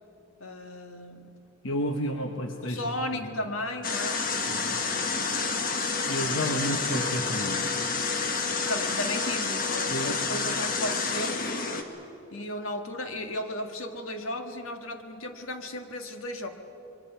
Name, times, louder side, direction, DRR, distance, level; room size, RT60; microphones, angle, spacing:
voice 1, 0.4-1.4 2.6-5.3 6.3-6.9 8.7-11.4 12.3-16.5, left 1 dB, 85° left, 5 dB, 1.7 m, -35 dB
voice 2, 1.6-3.3 4.4-4.8 6.1-7.8 9.9-10.2, equal, 70° left, 4 dB, 1.2 m, -31 dB
sound 1, 3.8-11.8, left 4 dB, 40° left, 1.4 m, -29 dB
27.0 x 22.5 x 5.8 m, 2.9 s
head